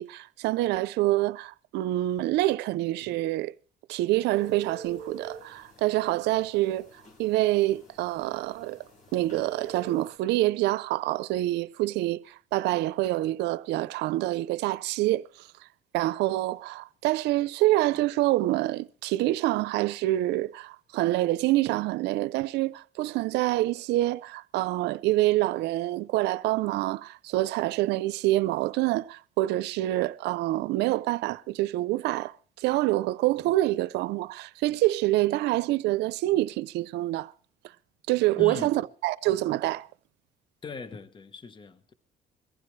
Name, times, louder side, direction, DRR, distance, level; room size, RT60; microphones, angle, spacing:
voice 1, 0.0-3.5 3.9-6.9 7.2-8.8 9.1-15.5 15.9-37.3 38.1-39.9, right 16 dB, 85° right, 0.6 m, -26 dB
sound 1, 4.3-10.1, right 4 dB, 50° left, 5.8 m, -46 dB
voice 2, 38.3-38.8 40.6-41.9, left 4 dB, 30° left, 1.1 m, -40 dB
22.5 x 15.0 x 3.2 m
cardioid pair, 110°, 17 cm